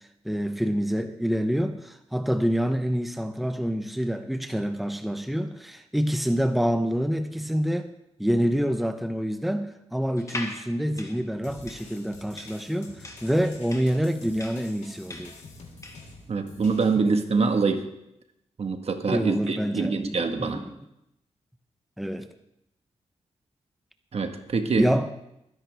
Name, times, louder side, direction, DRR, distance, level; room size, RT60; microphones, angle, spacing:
voice 1, 0.0-7.9 8.2-15.3 17.0-17.4 19.1-20.8 22.0-22.3 24.8-25.1, equal, ahead, 8 dB, 0.9 m, -27 dB
sound 1, 10.2-16.1, left 2 dB, 25° left, 2.1 m, -40 dB
sound 2, 11.4-17.0, left 3 dB, 85° left, 3.1 m, -48 dB
voice 2, 16.3-17.8 18.6-20.6 24.1-24.9, right 4 dB, 60° right, 6 dB, 1.5 m, -25 dB
21.5 x 10.5 x 3.5 m, 0.83 s
cardioid pair, 75°, 12 cm